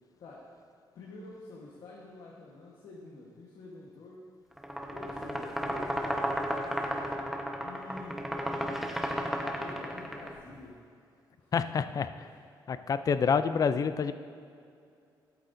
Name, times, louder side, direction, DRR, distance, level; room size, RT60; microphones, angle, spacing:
voice 1, 0.9-4.3 4.9-7.3 7.6-9.1 9.4-10.8 11.4-11.8 12.3-12.4, left 2 dB, 75° left, -4 dB, 1.3 m, -48 dB
sound 1, 4.6-10.3, equal, 5° right, 1.0 m, -33 dB
voice 2, 11.5-12.1 12.7-14.1, left 6 dB, 45° left, 12 dB, 0.4 m, -27 dB
12.0 x 8.3 x 2.6 m, 2.4 s
cardioid pair, 80°, 8 cm